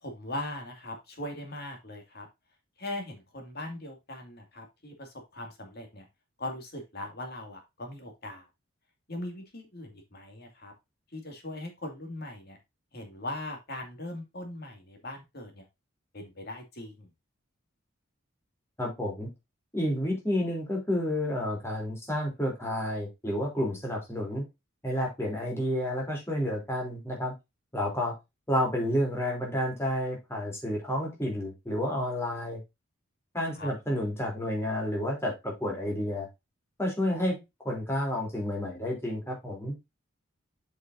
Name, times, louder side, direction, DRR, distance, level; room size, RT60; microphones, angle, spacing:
voice 1, 0.0-2.3 2.8-6.0 6.4-8.4 9.1-10.7 11.1-12.6 12.9-15.6 16.1-17.1 33.5-33.7, left 1 dB, 50° left, 4 dB, 2.5 m, -40 dB
voice 2, 18.8-19.3 19.7-24.4 24.8-27.3 27.7-28.1 28.5-32.6 33.3-36.3 36.8-37.4 37.6-39.7, left 1 dB, 10° left, -1 dB, 3.4 m, -30 dB
7.5 x 6.7 x 2.7 m, 0.22 s
head